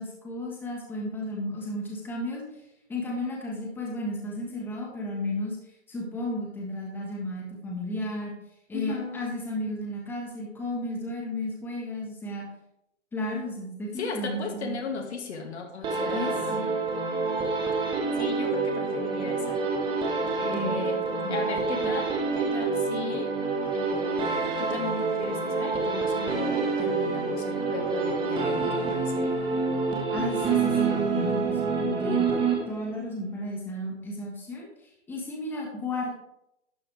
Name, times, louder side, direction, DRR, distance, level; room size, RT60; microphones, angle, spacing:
voice 1, 0.0-2.4 2.9-5.6 5.9-8.3 8.7-12.5 13.1-14.8 16.1-16.7 20.5-20.8 21.2-21.4 21.7-21.8 30.1-32.3 32.7-36.1, left 1 dB, 5° left, -2 dB, 1.5 m, -33 dB
voice 2, 8.7-9.3 14.0-16.6 18.2-19.6 20.4-21.0 21.3-23.3 23.7-29.4, left 4 dB, 65° left, 3 dB, 2.1 m, -36 dB
sound 1, 15.8-33.0, right 4 dB, 15° right, 1.5 m, -27 dB
12.0 x 7.4 x 3.5 m, 0.83 s
hypercardioid pair, 145°, 37 cm